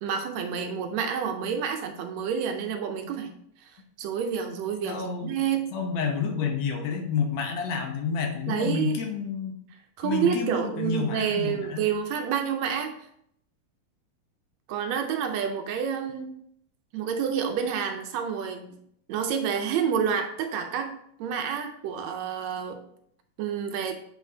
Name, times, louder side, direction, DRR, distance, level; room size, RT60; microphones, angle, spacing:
voice 1, 0.0-3.3 4.0-5.7 8.5-9.0 10.0-13.0 14.7-16.3 16.9-18.8 19.1-20.9 21.2-22.8 23.4-24.0, right 7 dB, 75° right, 5 dB, 1.7 m, -28 dB
voice 2, 4.8-5.3 5.7-9.5 10.0-11.9, left 5 dB, 70° left, 3 dB, 2.0 m, -29 dB
7.8 x 5.2 x 2.8 m, 0.69 s
omnidirectional pair, 3.6 m